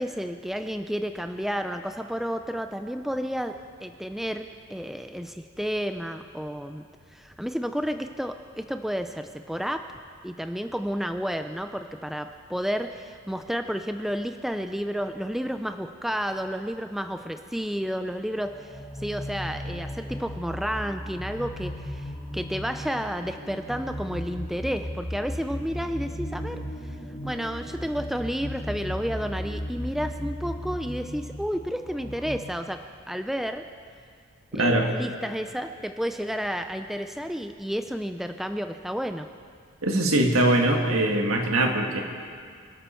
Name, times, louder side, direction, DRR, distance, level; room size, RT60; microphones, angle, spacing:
voice 1, 0.0-6.8 7.1-9.9 10.2-27.0 27.2-32.8 33.1-33.7 34.5-39.3, equal, ahead, 7 dB, 0.4 m, -31 dB
sound 1, 18.4-32.4, equal, 25° left, 2.4 m, -36 dB
voice 2, 34.5-34.9 39.8-42.0, right 1 dB, 80° right, 2 dB, 1.9 m, -22 dB
25.0 x 12.5 x 4.5 m, 2.2 s
head